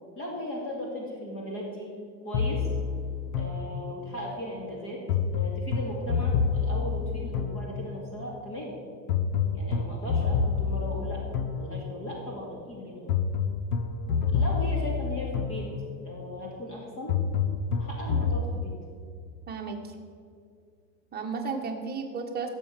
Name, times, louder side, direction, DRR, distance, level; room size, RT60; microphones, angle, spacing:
voice 1, 0.2-1.9 2.2-2.7 3.4-5.0 5.3-8.8 9.5-11.2 11.5-13.1 14.3-15.7 16.0-17.2 17.7-18.7, left 1 dB, 25° left, -2 dB, 2.2 m, -37 dB
sound 1, 2.3-4.2 5.1-8.1 9.1-12.2 13.1-16.1 17.1-18.5, left 6 dB, 50° left, 1.0 m, -28 dB
voice 2, 19.5-19.9 21.1-22.5, right 5 dB, 20° right, 2 dB, 1.4 m, -33 dB
16.0 x 7.2 x 5.8 m, 2.3 s
supercardioid pair, 140°, 50 cm